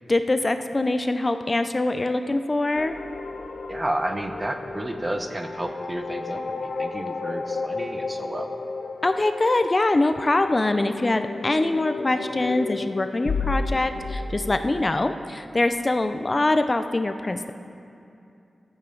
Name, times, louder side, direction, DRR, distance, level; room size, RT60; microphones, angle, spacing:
voice 1, 0.1-3.0 9.0-17.5, left 2 dB, 30° left, 8 dB, 0.4 m, -23 dB
sound 1, 2.8-15.0, left 3 dB, 80° left, 0.7 m, -33 dB
voice 2, 3.7-8.5, right 1 dB, 20° right, 6 dB, 0.8 m, -31 dB
22.0 x 9.0 x 3.8 m, 2.6 s
wide cardioid pair, 135°, 0 cm